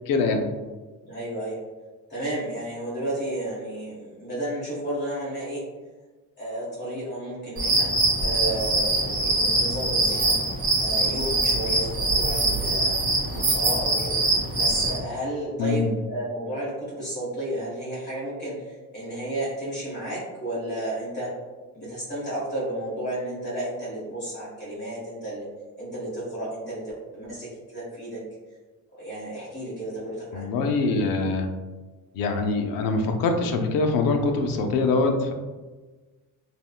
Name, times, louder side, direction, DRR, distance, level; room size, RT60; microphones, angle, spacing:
voice 1, 0.1-0.5 15.6-15.9 30.3-31.5 32.1-35.3, left 3 dB, 75° left, 4 dB, 0.5 m, -24 dB
voice 2, 1.0-1.6 2.1-5.6 6.4-7.9 8.2-10.4 10.8-12.9 13.3-14.2 14.5-21.3 21.7-25.5 25.8-28.2 28.9-30.5, right 1 dB, 30° left, -8 dB, 1.4 m, -32 dB
sound 1, 7.6-15.0, right 2 dB, 40° right, 0.9 m, -23 dB
3.5 x 2.1 x 2.3 m, 1.3 s
cardioid pair, 170°, 34 cm